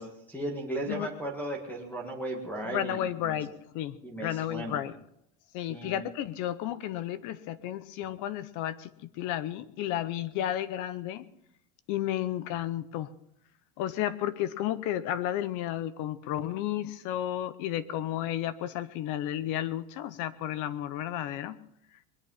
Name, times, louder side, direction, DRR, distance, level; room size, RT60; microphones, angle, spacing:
voice 1, 0.0-3.3 4.0-4.8 5.7-6.0, right 1 dB, 5° left, 1 dB, 1.8 m, -36 dB
voice 2, 2.6-3.5 3.7-5.0 5.5-11.2 11.9-13.1 13.8-21.6, left 12 dB, 40° left, 15 dB, 0.7 m, -32 dB
21.5 x 10.5 x 5.6 m, 0.75 s
cardioid pair, 170°, 48 cm